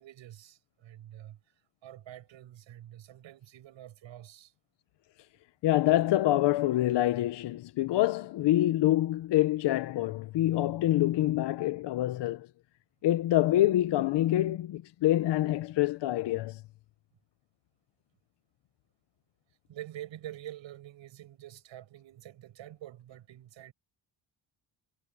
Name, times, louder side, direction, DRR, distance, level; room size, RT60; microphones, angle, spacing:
voice 1, 0.0-1.4 1.8-4.5 19.7-23.7, right 13 dB, 70° right, 7.1 m, -47 dB
voice 2, 5.6-12.5 13.0-16.6, left 14 dB, 60° left, 0.7 m, -26 dB
cardioid pair, 180°, 47 cm